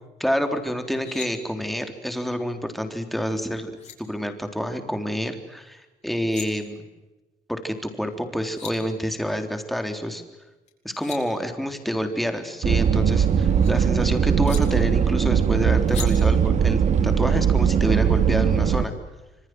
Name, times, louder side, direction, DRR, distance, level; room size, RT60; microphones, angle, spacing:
voice 1, 0.2-3.7 4.0-6.8 7.5-10.2 10.8-18.9, equal, ahead, 6 dB, 3.7 m, -28 dB
sound 1, 0.8-1.3 3.3-3.4 3.8-4.0 6.0-6.5 8.1-8.2 8.4-8.7 10.7-11.2 12.7-13.7 14.5-14.6 15.9-16.1, left 8 dB, 50° left, 7.6 m, -39 dB
sound 2, 12.6-18.8, right 7 dB, 55° right, 2.2 m, -20 dB
27.0 x 26.0 x 7.9 m, 1.1 s
cardioid pair, 140°, 15 cm